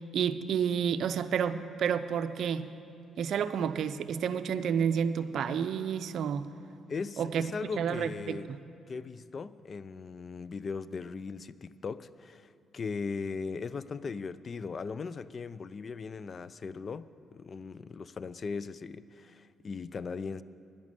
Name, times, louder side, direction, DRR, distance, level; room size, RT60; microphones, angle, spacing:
voice 1, 0.1-2.7 3.2-6.5 7.2-7.5 7.8-8.6, right 7 dB, 70° right, 12 dB, 0.5 m, -30 dB
voice 2, 6.9-8.5 8.9-20.4, left 5 dB, 40° left, 17 dB, 0.4 m, -38 dB
10.5 x 10.5 x 7.5 m, 2.4 s
cardioid pair, 90°, 0 cm